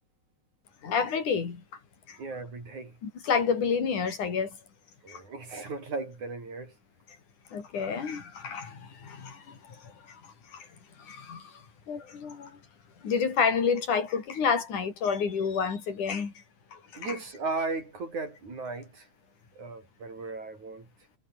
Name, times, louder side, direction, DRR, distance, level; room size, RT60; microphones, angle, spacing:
voice 1, 0.8-1.6 2.1-2.2 3.0-4.6 5.1-5.2 7.5-10.7 11.0-12.6 13.0-16.3 16.7-17.1, left 6 dB, 75° left, 5.5 m, -30 dB
voice 2, 2.2-3.0 5.0-6.7 17.0-19.1 19.6-20.9, right 3 dB, 70° right, 9.1 m, -36 dB
omnidirectional pair, 3.5 m